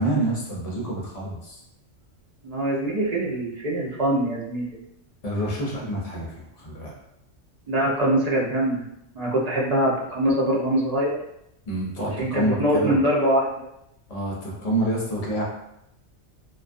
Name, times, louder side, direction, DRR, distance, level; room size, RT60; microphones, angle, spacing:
voice 1, 0.0-1.6 5.2-6.3 6.6-6.9 11.7-13.0 14.1-15.4, right 1 dB, 45° left, -4 dB, 0.6 m, -27 dB
voice 2, 2.4-4.7 7.7-8.8 9.1-11.2 12.1-13.5, right 1 dB, 60° right, -5 dB, 0.4 m, -23 dB
2.2 x 2.2 x 2.5 m, 0.78 s
omnidirectional pair, 1.2 m